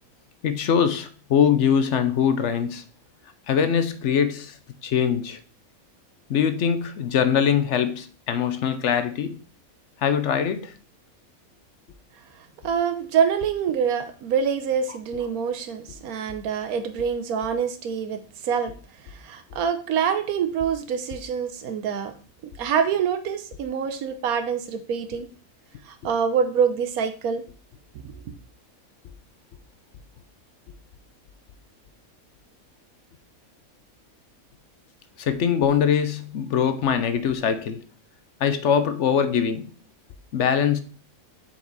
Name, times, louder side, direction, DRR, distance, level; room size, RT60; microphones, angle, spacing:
voice 1, 0.4-2.8 3.5-4.6 4.8-5.4 6.3-9.4 10.0-10.7 35.2-37.8 38.4-39.7 40.3-40.8, left 7 dB, 65° left, 0.9 m, -22 dB
voice 2, 12.4-18.7 19.0-22.1 22.6-25.3 25.8-27.4 28.0-28.2, right 7 dB, 85° right, 1.3 m, -26 dB
7.2 x 4.6 x 4.0 m
omnidirectional pair, 1.5 m